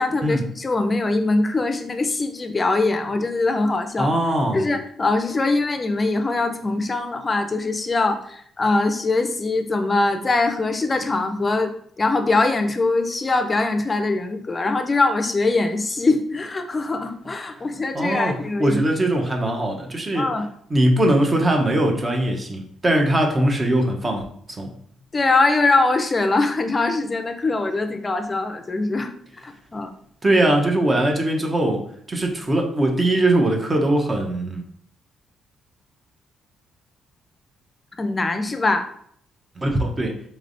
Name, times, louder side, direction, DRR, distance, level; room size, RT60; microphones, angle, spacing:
voice 1, 0.0-4.1 4.5-11.7 12.0-18.8 20.2-20.5 25.1-29.1 29.4-29.9 38.0-38.9, left 3 dB, 30° left, 7 dB, 0.5 m, -22 dB
voice 2, 4.0-4.6 17.9-18.3 18.6-20.3 20.7-24.2 24.6-24.7 30.2-34.6 39.6-40.2, right 1 dB, 25° right, 2 dB, 0.9 m, -21 dB
4.1 x 3.2 x 2.6 m, 0.64 s
cardioid pair, 90°, 0 cm